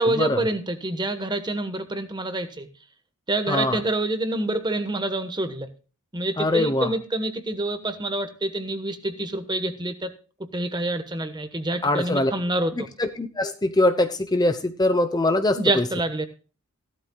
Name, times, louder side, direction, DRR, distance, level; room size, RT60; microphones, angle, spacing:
voice 1, 0.0-2.7 3.3-5.7 6.1-10.1 10.5-12.9 15.5-16.3, right 2 dB, 20° right, 9 dB, 1.2 m, -27 dB
voice 2, 3.5-3.8 6.4-6.9 11.8-12.3 12.8-15.9, left 2 dB, 20° left, 8 dB, 0.8 m, -23 dB
16.5 x 12.0 x 2.3 m, 0.36 s
head